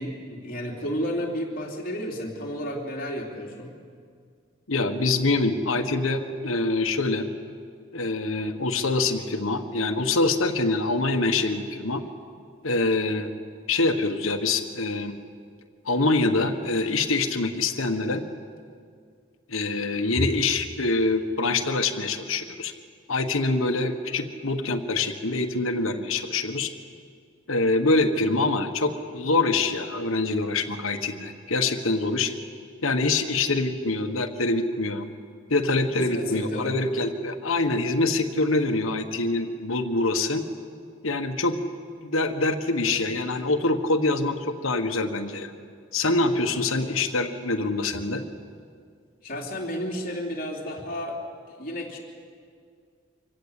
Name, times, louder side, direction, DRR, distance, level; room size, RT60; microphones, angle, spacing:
voice 1, 0.0-3.7 36.0-36.8 49.2-51.2 51.5-52.0, equal, 45° left, -1 dB, 3.5 m, -32 dB
voice 2, 4.7-7.3 7.9-12.0 12.6-13.3 13.7-15.1 15.8-18.2 19.5-22.7 23.1-26.7 27.5-32.3 32.8-35.1 35.5-40.4 41.0-41.6 42.0-45.5 45.9-48.2, left 3 dB, 80° left, 5 dB, 1.5 m, -25 dB
25.5 x 16.0 x 8.5 m, 2.2 s
head